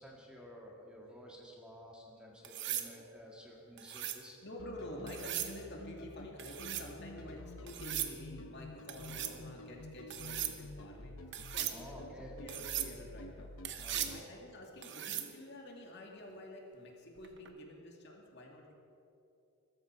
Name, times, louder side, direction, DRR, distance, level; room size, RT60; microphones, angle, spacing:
voice 1, 0.0-4.4 7.2-7.7 11.7-12.4 13.8-14.3, equal, 5° right, -2 dB, 1.9 m, -53 dB
sound 1, 2.4-2.9 3.8-4.2 5.1-5.6 6.4-6.9 7.7-8.1 8.9-9.4 10.1-10.6 11.3-11.8 12.5-12.9 13.6-14.2 14.8-15.3 17.2-17.5, right 11 dB, 50° right, 1.0 m, -38 dB
voice 2, 4.4-13.5 13.9-18.7, left 1 dB, 50° left, 0 dB, 2.5 m, -49 dB
sound 2, 4.6-14.2, left 2 dB, 70° left, 1.0 m, -49 dB
21.5 x 13.5 x 4.7 m, 2.7 s
head